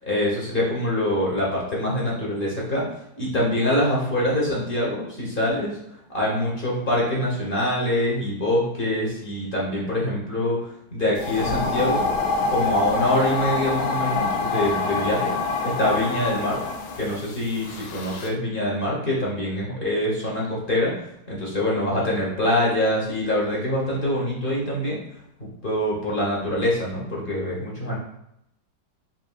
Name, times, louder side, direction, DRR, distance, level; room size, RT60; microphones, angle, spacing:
voice 1, 0.1-2.9 3.2-5.8 6.1-10.6 10.9-12.1 12.5-15.3 15.6-16.6 17.0-20.9 21.3-25.0 25.6-28.0, left 1 dB, 35° left, -5 dB, 0.9 m, -24 dB
sound 1, 11.2-18.3, left 3 dB, 90° left, 1.5 m, -26 dB
5.9 x 3.0 x 2.3 m, 0.78 s
omnidirectional pair, 2.2 m